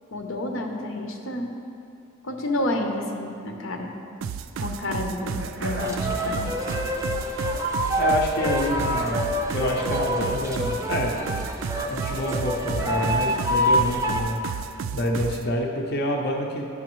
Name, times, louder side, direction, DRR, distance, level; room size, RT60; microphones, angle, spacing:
voice 1, 0.1-1.5 2.2-3.9 4.6-6.6, left 1 dB, 85° left, 2 dB, 0.8 m, -30 dB
sound 1, 4.2-15.5, right 7 dB, 85° right, 0.3 m, -33 dB
sound 2, 5.4-10.5, right 1 dB, 70° right, 0.7 m, -41 dB
sound 3, 5.8-14.2, equal, 15° right, 0.5 m, -26 dB
voice 2, 8.0-11.2 11.9-14.4 14.9-16.7, equal, 55° left, 0 dB, 0.6 m, -27 dB
11.0 x 5.6 x 3.1 m, 2.6 s
head